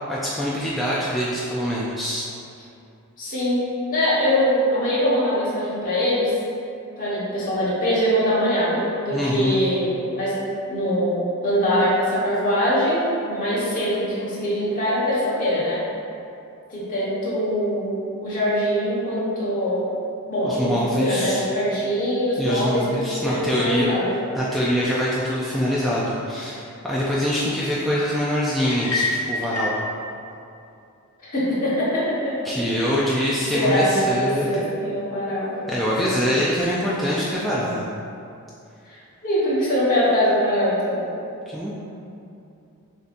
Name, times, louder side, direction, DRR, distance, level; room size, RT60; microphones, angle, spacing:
voice 1, 0.1-2.3 9.1-9.6 20.4-21.4 22.4-23.9 24.4-29.7 32.4-34.7 35.7-37.9 41.5-41.7, equal, ahead, -8 dB, 0.4 m, -24 dB
voice 2, 3.2-3.6 3.9-6.4 7.0-10.4 10.7-15.8 16.7-19.9 20.3-24.2 31.2-32.4 33.5-35.6 36.0-36.2 38.9-41.0, equal, 40° left, -9 dB, 1.2 m, -23 dB
sound 1, 28.7-29.8, left 3 dB, 75° left, 0.7 m, -26 dB
6.6 x 2.8 x 2.5 m, 2.6 s
head